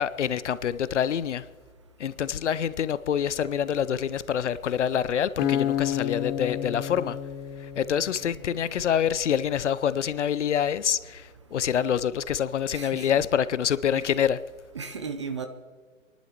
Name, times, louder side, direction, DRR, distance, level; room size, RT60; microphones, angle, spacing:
voice 1, 0.0-1.4 2.0-7.2 7.6-14.4, left 9 dB, 60° left, 0.6 m, -26 dB
Acoustic guitar, 5.4-8.6, left 10 dB, 20° left, 0.8 m, -30 dB
voice 2, 12.7-13.2 14.0-14.2 14.7-15.5, right 5 dB, 25° right, 0.4 m, -36 dB
27.5 x 11.5 x 3.0 m
figure-of-eight pair, 130°, 41 cm